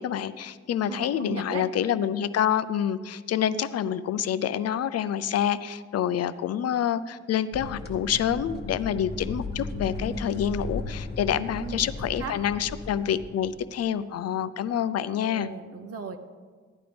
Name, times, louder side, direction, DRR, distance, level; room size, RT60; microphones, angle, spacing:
voice 1, 0.0-15.5, left 9 dB, 60° left, 13 dB, 0.5 m, -27 dB
voice 2, 0.8-1.6 11.6-12.3 15.2-16.2, right 5 dB, 55° right, 5 dB, 0.9 m, -37 dB
sound 1, 7.5-13.7, left 2 dB, 35° left, 1.2 m, -36 dB
15.5 x 11.0 x 3.5 m, 1.5 s
wide cardioid pair, 155°, 29 cm